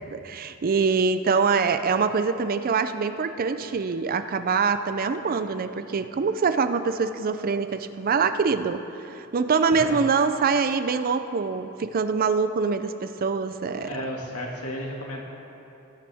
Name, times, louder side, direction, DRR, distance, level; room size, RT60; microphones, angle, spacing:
voice 1, 0.1-13.9, right 5 dB, 40° right, 10 dB, 0.4 m, -24 dB
voice 2, 13.8-15.2, equal, 80° left, -1 dB, 2.0 m, -33 dB
18.0 x 9.8 x 3.5 m, 3.0 s
head